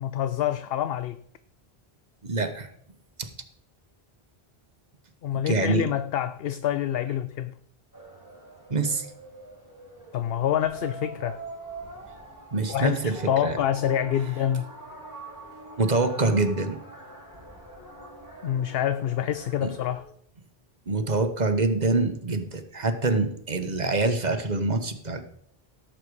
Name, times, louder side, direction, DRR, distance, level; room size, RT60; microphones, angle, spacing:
voice 1, 0.0-1.2 5.2-7.5 10.1-11.4 12.7-14.7 18.4-20.0, left 10 dB, 70° left, 0.8 m, -27 dB
voice 2, 2.2-2.7 3.2-3.3 5.3-5.9 8.7-9.1 12.5-13.6 15.8-16.8 19.6-19.7 20.9-25.2, right 3 dB, 45° right, 1.4 m, -25 dB
sound 1, 7.9-20.0, right 2 dB, 20° left, 4.3 m, -44 dB
17.0 x 7.7 x 4.8 m
omnidirectional pair, 1.0 m